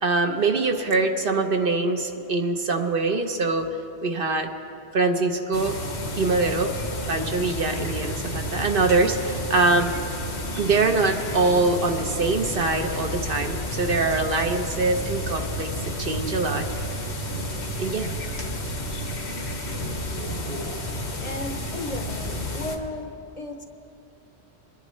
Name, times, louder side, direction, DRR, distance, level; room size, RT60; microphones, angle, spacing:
voice 1, 0.0-3.7 4.0-4.5 4.9-5.8 6.2-6.7 7.1-9.9 10.6-15.7 16.0-16.7 17.8-18.1, right 3 dB, 60° right, 4 dB, 1.0 m, -23 dB
sound 1, 5.5-22.8, left 1 dB, 80° left, 1.5 m, -31 dB
voice 2, 21.2-23.6, left 2 dB, 40° left, 4 dB, 0.8 m, -35 dB
22.5 x 11.0 x 3.1 m, 3.0 s
omnidirectional pair, 1.1 m